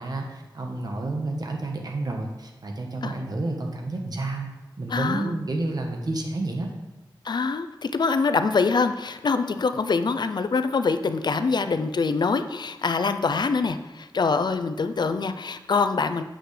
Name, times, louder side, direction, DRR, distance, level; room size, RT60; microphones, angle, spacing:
voice 1, 0.0-4.5 4.8-6.7, right 2 dB, 55° right, 1 dB, 1.2 m, -30 dB
voice 2, 4.9-5.3 7.2-16.2, left 4 dB, 65° left, 10 dB, 0.4 m, -24 dB
7.9 x 6.2 x 3.3 m, 1.1 s
wide cardioid pair, 90°, 8 cm